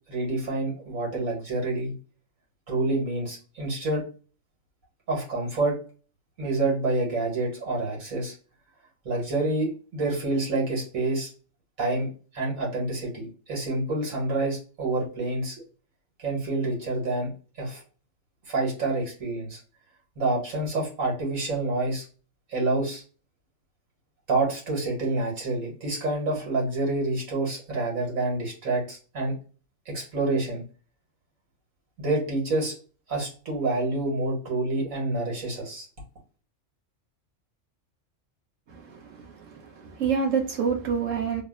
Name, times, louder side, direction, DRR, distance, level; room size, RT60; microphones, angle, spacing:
voice 1, 0.1-1.9 2.7-4.0 5.1-5.8 6.4-8.3 9.1-11.3 11.8-12.1 12.3-15.6 16.2-17.3 17.6-17.8 18.5-19.6 20.2-22.0 22.5-23.0 24.3-29.3 29.9-30.6 32.0-32.7 33.1-35.9, right 2 dB, 90° right, 2.1 m, -27 dB
voice 2, 38.7-41.4, right 6 dB, 70° right, 1.3 m, -28 dB
3.5 x 2.0 x 3.7 m
omnidirectional pair, 1.4 m